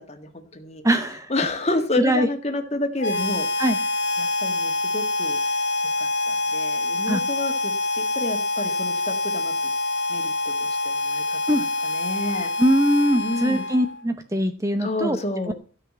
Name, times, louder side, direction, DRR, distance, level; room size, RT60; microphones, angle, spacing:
voice 1, 0.0-0.8 1.3-3.5 4.2-5.6 6.0-9.6 10.1-10.3 10.6-12.5 13.2-13.7 14.8-15.5, left 2 dB, 30° left, 6 dB, 1.8 m, -30 dB
voice 2, 0.8-1.3 2.0-2.3 3.6-3.8 7.1-7.2 11.5-11.6 12.6-15.2 15.5-15.6, equal, 15° right, 8 dB, 0.7 m, -21 dB
Harmonica, 3.0-14.0, left 2 dB, 60° left, 1.3 m, -26 dB
13.0 x 5.9 x 7.4 m, 0.37 s
head